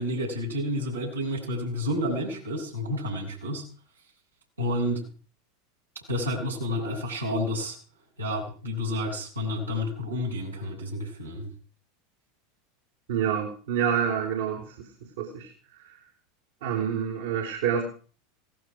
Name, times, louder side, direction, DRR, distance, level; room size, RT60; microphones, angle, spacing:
voice 1, 0.0-3.7 4.6-5.0 6.1-7.8 8.2-11.5, left 1 dB, 85° right, -3 dB, 7.2 m, -30 dB
voice 2, 13.1-14.6 15.2-15.5 16.6-17.8, right 8 dB, 65° right, -2 dB, 4.2 m, -27 dB
18.0 x 15.0 x 5.0 m, 0.40 s
figure-of-eight pair, 80°, 0 cm